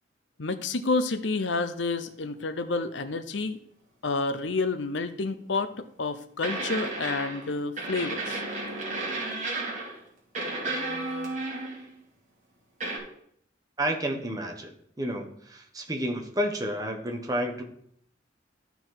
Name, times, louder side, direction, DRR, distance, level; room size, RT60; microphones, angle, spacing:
voice 1, 0.4-3.6 4.0-8.4, left 3 dB, 80° left, 11 dB, 0.8 m, -29 dB
sound 1, 5.5-5.7 6.4-7.5 7.8-10.0 10.3-11.9 12.8-13.0, right 2 dB, 40° right, 2.7 m, -33 dB
voice 2, 13.8-17.6, equal, 20° right, 2 dB, 1.3 m, -31 dB
14.0 x 4.7 x 4.0 m, 0.69 s
head